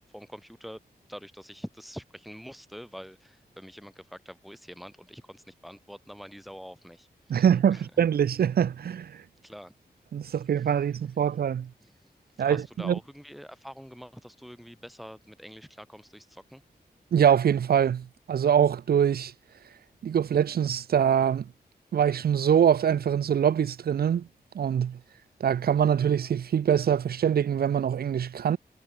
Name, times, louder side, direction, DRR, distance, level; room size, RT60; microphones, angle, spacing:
voice 1, 0.1-0.8 1.1-7.9 9.4-9.7 10.6-10.7 11.8-12.1 12.4-16.6, equal, ahead, 7.5 m, -45 dB
voice 2, 7.3-9.1 10.1-11.7 12.4-13.0 17.1-19.3 20.0-21.5 21.9-24.3 24.5-25.0 25.4-28.6, right 8 dB, 70° right, 0.5 m, -24 dB
wide cardioid pair, 80°, 17 cm